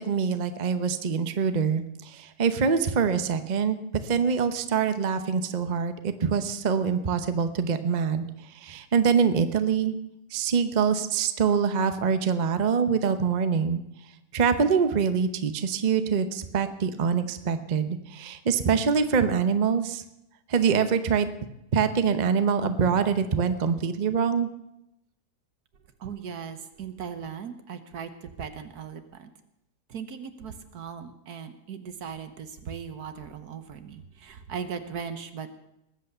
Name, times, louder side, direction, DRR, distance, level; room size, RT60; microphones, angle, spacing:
voice 1, 0.0-8.3 8.6-9.9 10.3-13.8 14.3-20.0 20.5-21.3 21.7-24.5, right 6 dB, 35° right, 9 dB, 0.8 m, -24 dB
voice 2, 26.0-29.3 29.9-35.5, right 7 dB, 70° right, 9 dB, 1.6 m, -38 dB
19.5 x 8.3 x 6.7 m, 0.86 s
omnidirectional pair, 1.7 m